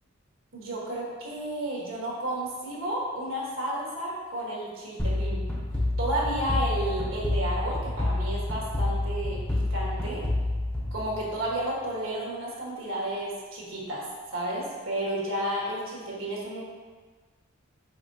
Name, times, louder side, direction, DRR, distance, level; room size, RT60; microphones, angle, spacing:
voice 1, 0.5-5.4 6.0-10.2 10.9-14.0 14.3-16.6, right 1 dB, 80° right, -4 dB, 1.3 m, -32 dB
sound 1, 5.0-11.6, left 1 dB, 5° left, 0.6 m, -29 dB
5.1 x 3.8 x 2.7 m, 1.4 s
head